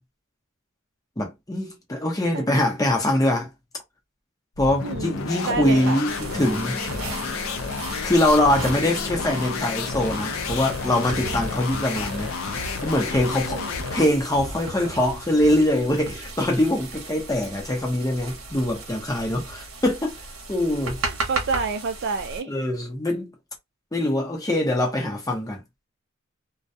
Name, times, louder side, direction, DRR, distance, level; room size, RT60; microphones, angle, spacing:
voice 1, 1.2-3.5 4.6-6.8 8.0-12.3 12.8-20.1 20.5-21.0 22.5-23.3 23.9-25.6, left 1 dB, 15° left, 0.8 m, -23 dB
sound 1, 4.5-14.2, left 5 dB, 80° left, 0.5 m, -31 dB
sound 2, 4.8-11.6, left 1 dB, 15° right, 0.6 m, -39 dB
voice 2, 4.8-5.1 5.4-6.0 13.5-13.9 21.0-22.5, right 4 dB, 60° right, 0.4 m, -28 dB
sound 3, 6.1-22.4, right 3 dB, 90° right, 0.8 m, -36 dB
2.2 x 2.2 x 2.6 m
head